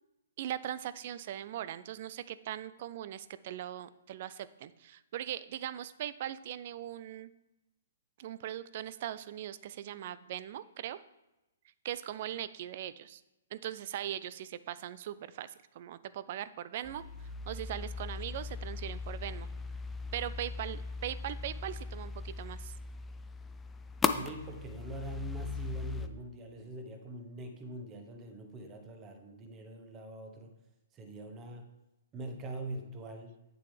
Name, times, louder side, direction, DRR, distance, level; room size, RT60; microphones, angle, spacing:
voice 1, 0.4-7.3 8.2-11.0 11.8-13.2 13.5-17.0 17.5-19.5 20.1-22.7, right 11 dB, 50° right, 15 dB, 0.4 m, -40 dB
sound 1, 16.8-26.1, left 4 dB, 10° left, 0.5 m, -38 dB
voice 2, 24.1-30.5 30.9-31.7 32.1-33.4, right 2 dB, 25° right, 5 dB, 1.2 m, -43 dB
8.5 x 6.6 x 3.3 m, 0.96 s
figure-of-eight pair, 125°, 0 cm